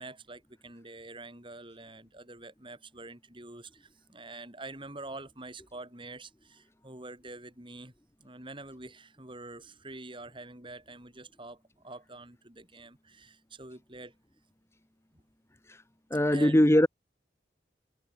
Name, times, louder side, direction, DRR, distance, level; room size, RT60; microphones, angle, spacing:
voice 1, 0.0-7.9 8.2-14.1 15.1-15.2 16.3-16.6, right 2 dB, 30° right, 6.2 m, -46 dB
voice 2, 16.1-16.9, left 1 dB, 15° left, 1.2 m, -21 dB
head